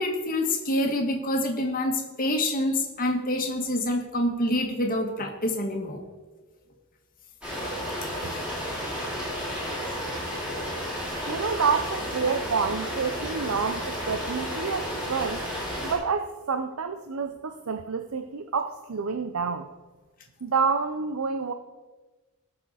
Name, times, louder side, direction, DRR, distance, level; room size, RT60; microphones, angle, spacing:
voice 1, 0.0-6.0, left 1 dB, 40° left, 3 dB, 1.7 m, -26 dB
sound 1, 7.4-15.9, equal, 5° right, 4.1 m, -32 dB
voice 2, 11.3-15.5 15.8-19.7 20.4-21.5, right 5 dB, 70° right, 8 dB, 0.6 m, -28 dB
18.5 x 6.8 x 4.2 m, 1.2 s
head